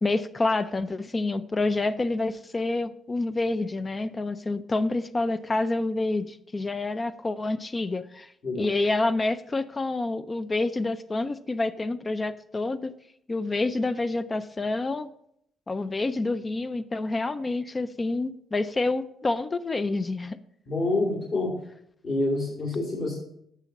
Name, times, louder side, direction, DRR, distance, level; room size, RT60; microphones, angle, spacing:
voice 1, 0.0-8.3 8.6-12.9 13.3-15.1 15.7-20.4, left 2 dB, 25° left, 12 dB, 0.4 m, -28 dB
voice 2, 20.7-21.5 22.0-23.2, left 2 dB, 60° left, -7 dB, 2.7 m, -27 dB
8.2 x 5.9 x 4.0 m, 0.72 s
cardioid pair, 90°, 0 cm